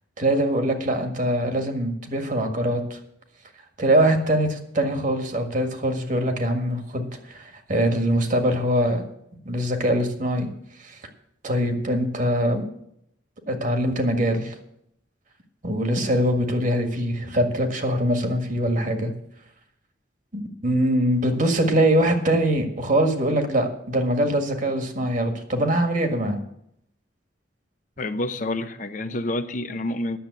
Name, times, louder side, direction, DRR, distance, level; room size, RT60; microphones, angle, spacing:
voice 1, 0.2-3.0 3.8-9.0 9.5-10.5 10.8-11.0 11.4-12.6 13.5-14.6 15.6-19.1 20.3-26.4, right 1 dB, 45° right, 5 dB, 1.8 m, -23 dB
voice 2, 28.0-30.2, left 1 dB, 45° left, 9 dB, 0.7 m, -28 dB
10.0 x 7.5 x 8.0 m, 0.74 s
head